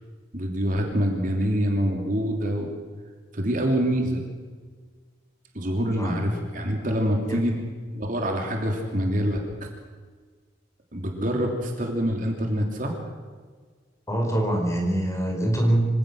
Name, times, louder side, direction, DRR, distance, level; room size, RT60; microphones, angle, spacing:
voice 1, 0.3-2.7 3.3-4.2 5.5-7.5 7.9-9.7 10.9-13.0, equal, 45° right, 2 dB, 3.1 m, -25 dB
voice 2, 5.8-6.2 7.2-7.4 14.1-15.9, right 1 dB, 15° left, 1 dB, 5.1 m, -24 dB
26.0 x 18.0 x 6.5 m, 1.5 s
head